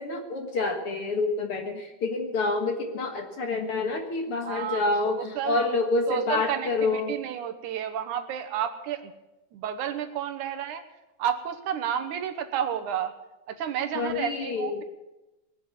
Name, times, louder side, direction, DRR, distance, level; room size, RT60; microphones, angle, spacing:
voice 1, 0.0-7.2 13.9-14.8, left 3 dB, 50° left, 3 dB, 2.1 m, -28 dB
voice 2, 4.4-5.6 6.1-9.1 9.5-10.8 11.2-13.1 13.5-14.8, right 9 dB, 75° right, 8 dB, 2.5 m, -31 dB
20.0 x 7.9 x 8.7 m, 1.0 s
omnidirectional pair, 3.6 m